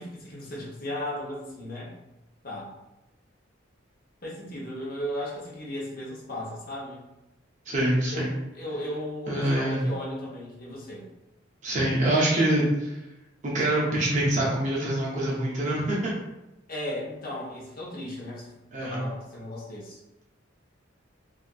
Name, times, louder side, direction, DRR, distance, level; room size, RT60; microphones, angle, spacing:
voice 1, 0.0-1.9 2.4-2.7 4.2-7.0 8.1-8.3 8.5-11.1 16.7-18.5 18.8-20.0, left 1 dB, 45° left, -4 dB, 0.6 m, -35 dB
voice 2, 7.7-8.3 9.3-9.8 11.6-13.0 13.4-16.1 18.7-19.0, right 1 dB, 35° right, -5 dB, 0.5 m, -25 dB
2.7 x 2.4 x 2.3 m, 0.96 s
head